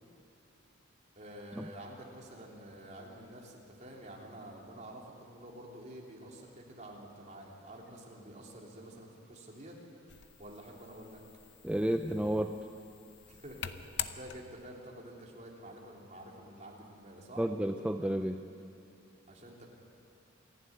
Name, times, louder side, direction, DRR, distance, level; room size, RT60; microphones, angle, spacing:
voice 1, 1.1-9.8 10.4-11.2 13.3-17.4 19.3-19.7, right 1 dB, 35° right, -2 dB, 3.3 m, -49 dB
sound 1, 10.1-14.8, left 10 dB, 65° left, 0.8 m, -45 dB
voice 2, 11.6-12.5 17.4-18.4, right 1 dB, 5° right, 5 dB, 0.5 m, -31 dB
27.0 x 11.0 x 9.7 m, 2.5 s
head